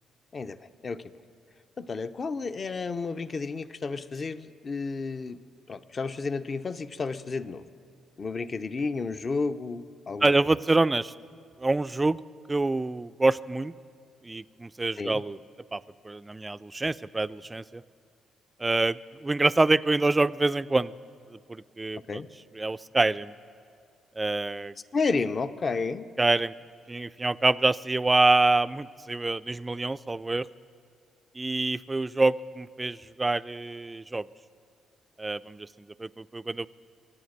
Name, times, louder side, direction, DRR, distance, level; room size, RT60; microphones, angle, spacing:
voice 1, 1.8-5.4 5.7-7.6 8.2-10.3 15.0-15.2 22.1-22.3 24.9-26.1, left 4 dB, 40° left, 12 dB, 0.6 m, -31 dB
voice 2, 10.2-11.1 11.6-12.2 12.5-13.7 14.2-15.4 15.7-17.8 18.6-20.9 21.3-22.2 22.5-23.3 24.2-24.7 26.2-26.5 26.9-30.5 31.4-34.3 35.2-36.7, right 2 dB, 20° right, 14 dB, 0.3 m, -26 dB
24.5 x 8.8 x 6.5 m, 2.3 s
cardioid pair, 90°, 0 cm